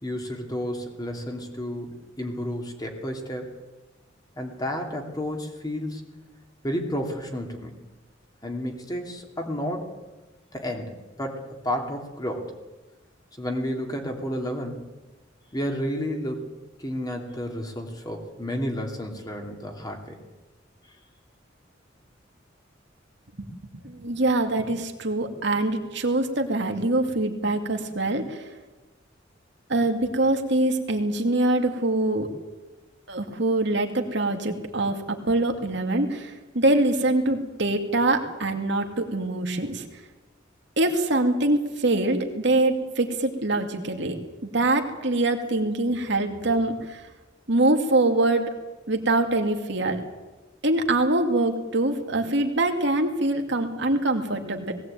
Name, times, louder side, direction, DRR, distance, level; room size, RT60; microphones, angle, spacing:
voice 1, 0.0-3.5 4.4-6.0 6.6-7.7 8.4-9.9 10.5-12.5 13.4-14.9 15.5-16.5 16.8-20.2, equal, 20° left, 2 dB, 2.8 m, -31 dB
voice 2, 23.4-28.4 29.7-32.3 33.1-39.8 40.8-47.0 47.5-48.4 48.9-50.0 50.6-54.7, right 2 dB, 65° right, 4 dB, 2.4 m, -24 dB
19.0 x 17.5 x 9.0 m, 1.1 s
head